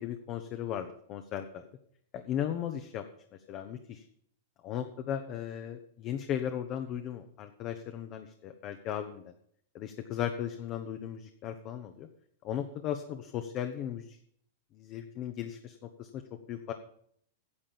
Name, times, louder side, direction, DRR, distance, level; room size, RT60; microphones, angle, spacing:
voice 1, 0.0-1.6 2.1-3.1 3.5-4.0 4.6-9.3 9.7-12.1 12.4-14.2 14.7-16.7, left 10 dB, 40° left, 7 dB, 0.9 m, -36 dB
9.7 x 7.5 x 7.0 m, 0.66 s
hypercardioid pair, 125°, 0 cm